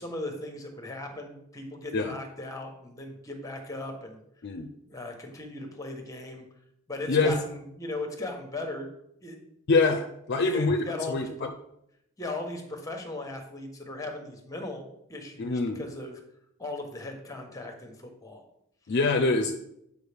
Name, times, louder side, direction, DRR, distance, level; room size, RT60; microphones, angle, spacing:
voice 1, 0.0-4.2 4.8-6.4 6.9-8.9 9.2-9.4 10.3-11.5 12.2-16.2 16.6-18.4, left 2 dB, 15° left, 4 dB, 1.1 m, -38 dB
voice 2, 9.7-10.8 11.1-11.3 15.4-15.8 18.9-19.6, left 3 dB, 55° left, 5 dB, 0.5 m, -24 dB
8.0 x 5.0 x 3.4 m, 0.77 s
head